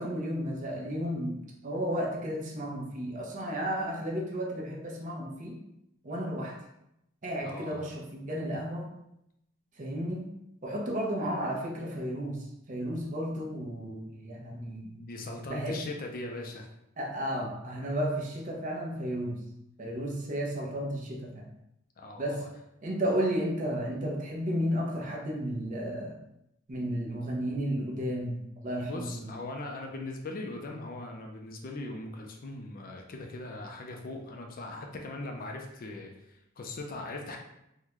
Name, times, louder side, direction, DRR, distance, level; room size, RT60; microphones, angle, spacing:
voice 1, 0.0-5.6 6.0-6.6 7.2-8.9 9.8-10.3 10.6-14.9 15.5-15.8 17.0-19.4 19.8-21.5 22.2-22.4 22.8-26.2 26.7-29.3, equal, 35° right, -2 dB, 0.6 m, -33 dB
voice 2, 7.4-7.9 14.8-16.7 22.0-22.5 28.8-37.4, left 2 dB, 40° left, 2 dB, 0.4 m, -40 dB
3.6 x 2.2 x 3.0 m, 0.82 s
head